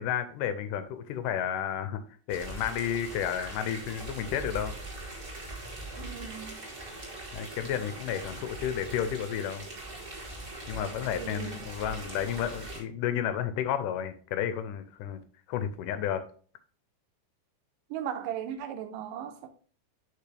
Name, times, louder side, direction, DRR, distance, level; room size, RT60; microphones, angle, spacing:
voice 1, 0.0-2.0 2.3-4.7 7.3-9.7 10.7-15.2 15.5-16.2, left 9 dB, 90° left, 2.2 m, -32 dB
sound 1, 2.3-12.8, right 2 dB, 50° right, 0.6 m, -41 dB
voice 2, 6.0-6.6 11.2-11.6 17.9-19.5, right 9 dB, 80° right, 2.3 m, -37 dB
6.7 x 5.4 x 3.3 m
omnidirectional pair, 3.8 m